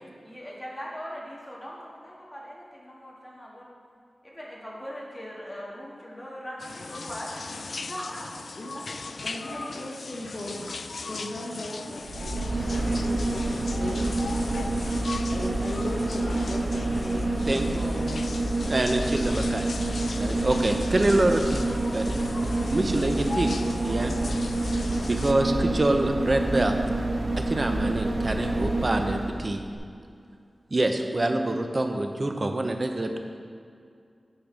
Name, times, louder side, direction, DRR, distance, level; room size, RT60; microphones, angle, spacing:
voice 1, 0.2-3.7 4.2-7.3 7.7-8.4 8.7-9.2 12.6-13.1, equal, 15° left, -5 dB, 1.8 m, -40 dB
sound 1, 6.6-25.3, left 3 dB, 70° left, 0.3 m, -39 dB
voice 2, 9.2-10.6 10.9-14.1 15.3-18.1, left 1 dB, 50° left, -5 dB, 1.2 m, -37 dB
sound 2, 12.0-29.4 29.7-29.8, right 2 dB, 70° right, 1.4 m, -28 dB
voice 3, 17.5-17.9 18.6-19.7 20.2-22.2 22.7-23.5 23.8-24.1 24.7-26.7 27.5-29.6 30.7-33.2, right 2 dB, 40° right, 5 dB, 0.7 m, -26 dB
8.8 x 5.2 x 5.2 m, 2.4 s
wide cardioid pair, 100°, 0 cm